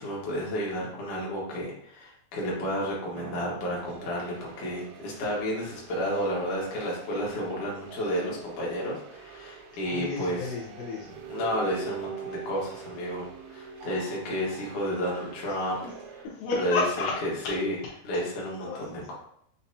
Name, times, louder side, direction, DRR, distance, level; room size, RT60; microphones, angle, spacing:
voice 1, 0.0-10.4 11.3-15.8 16.6-16.8 17.5-17.7 18.0-19.1, equal, 60° left, -4 dB, 2.1 m, -31 dB
sound 1, 3.1-16.3, right 6 dB, 90° right, 2.9 m, -44 dB
voice 2, 9.9-11.2 15.5-15.9 16.2-17.6 17.8-18.3 18.6-18.8, left 4 dB, 80° left, -6 dB, 2.0 m, -32 dB
6.8 x 2.8 x 2.7 m, 0.68 s
omnidirectional pair, 5.1 m